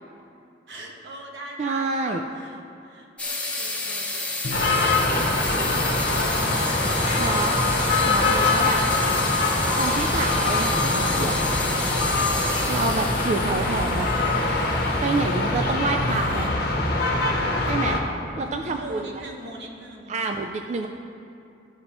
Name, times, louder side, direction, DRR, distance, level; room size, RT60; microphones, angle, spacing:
voice 1, 0.7-6.5 6.8-7.6 18.4-20.2 20.7-20.9, right 1 dB, 80° right, 0 dB, 1.2 m, -42 dB
voice 2, 1.6-2.2 7.2-7.6 8.1-8.8 9.8-11.5 12.7-14.1 15.0-16.5 17.6-18.0 18.4-19.2 20.1-20.9, right 3 dB, 40° right, 5 dB, 0.3 m, -27 dB
sound 1, 3.2-16.6, left 2 dB, 10° left, 0.8 m, -31 dB
Bowed string instrument, 4.4-7.3, left 1 dB, 45° left, 0.4 m, -41 dB
sound 2, 4.5-18.0, left 2 dB, 65° left, 1.1 m, -23 dB
13.0 x 5.2 x 3.0 m, 2.7 s
head